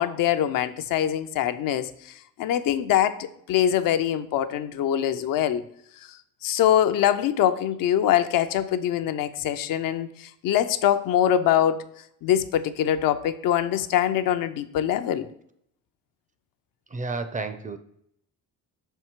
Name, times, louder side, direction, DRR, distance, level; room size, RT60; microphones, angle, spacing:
voice 1, 0.0-1.9 2.4-5.6 6.4-11.8 12.2-15.3, left 10 dB, 80° left, 10 dB, 0.5 m, -23 dB
voice 2, 16.9-17.8, right 3 dB, 25° right, 9 dB, 0.4 m, -31 dB
5.6 x 4.5 x 4.4 m, 0.71 s
cardioid pair, 120°, 33 cm